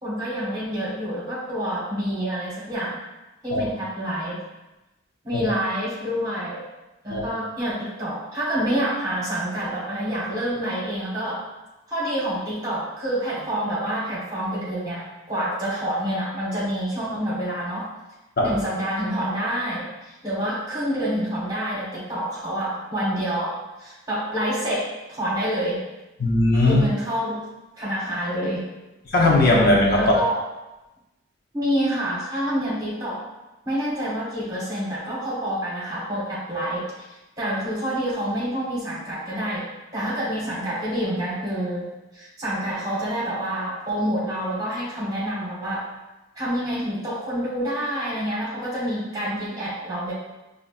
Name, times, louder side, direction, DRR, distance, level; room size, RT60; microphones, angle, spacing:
voice 1, 0.0-3.0 3.4-4.4 5.2-6.6 7.0-11.4 11.9-17.9 18.4-25.8 26.6-27.4 27.8-28.6 30.0-30.4 31.5-33.2 33.6-36.8 37.4-39.7 39.9-45.9 46.3-50.1, equal, 20° right, -7 dB, 1.1 m, -27 dB
voice 2, 26.2-26.8 29.1-30.0, left 2 dB, 50° left, -3 dB, 0.6 m, -18 dB
5.2 x 2.5 x 2.4 m, 1.0 s
head